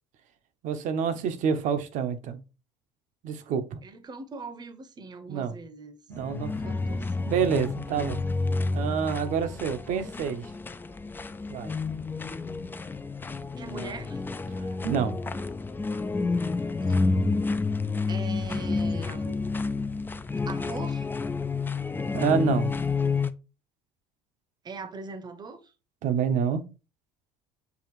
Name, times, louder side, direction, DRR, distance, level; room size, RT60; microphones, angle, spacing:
voice 1, 0.6-2.4 3.2-3.8 5.3-5.5 6.1-6.7 7.3-8.2 8.7-10.4 11.5-11.7 14.6-15.4 22.1-22.7 26.0-26.6, right 7 dB, 60° right, 0.8 m, -27 dB
voice 2, 3.8-6.0 6.6-7.3 13.6-14.2 16.8-17.1 18.1-19.4 20.5-21.1 24.6-25.7, right 4 dB, 30° right, 0.8 m, -40 dB
sound 1, 6.1-23.3, left 4 dB, 15° left, 0.4 m, -30 dB
6.9 x 2.5 x 3.1 m
supercardioid pair, 80°, 14 cm